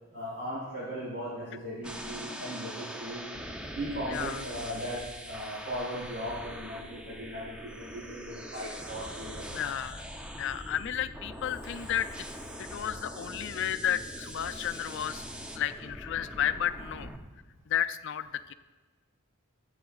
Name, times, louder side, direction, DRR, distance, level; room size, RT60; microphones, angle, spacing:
voice 1, 0.1-3.2 3.8-9.5, equal, 55° right, -11 dB, 4.0 m, -38 dB
sound 1, 1.8-17.2, equal, 5° right, 0.6 m, -42 dB
voice 2, 4.1-4.4 9.5-10.1 10.3-12.1 12.6-15.2 15.5-17.1 17.7-18.5, left 10 dB, 60° left, 12 dB, 0.4 m, -32 dB
22.0 x 7.9 x 2.4 m, 1.3 s
head